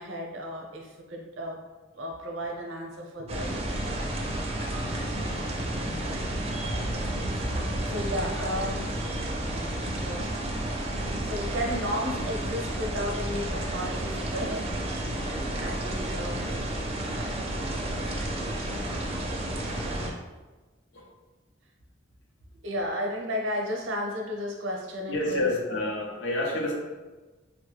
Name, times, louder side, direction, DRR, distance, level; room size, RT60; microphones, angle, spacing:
voice 1, 0.0-1.6 2.0-3.6 7.8-9.0 9.4-9.7 10.0-10.3 11.2-14.7 15.6-16.5 22.6-25.5, equal, 80° right, 0 dB, 0.6 m, -33 dB
sound 1, 3.3-20.1, right 1 dB, 30° right, 0.4 m, -31 dB
voice 2, 5.9-6.2 17.8-18.0 18.6-19.0 20.9-21.1 25.1-26.7, left 2 dB, 75° left, -1 dB, 0.7 m, -30 dB
3.5 x 2.2 x 3.2 m, 1.2 s
head